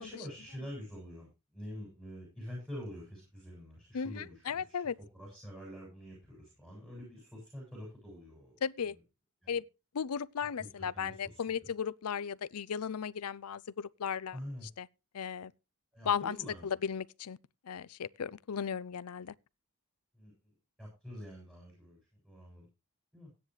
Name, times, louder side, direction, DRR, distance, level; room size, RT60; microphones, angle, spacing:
voice 1, 0.0-4.8 5.1-8.6 9.4-9.6 10.6-11.6 14.3-14.7 15.9-16.7 20.1-20.3 20.8-22.0 22.2-22.7 23.1-23.3, equal, 5° right, 7.3 m, -46 dB
voice 2, 3.9-5.0 8.6-9.0 9.5-9.7 9.9-14.4 14.8-14.9 15.1-15.5 16.0-16.4 16.6-17.4 17.6-19.3, left 7 dB, 85° left, 0.5 m, -36 dB
15.5 x 9.9 x 3.2 m
head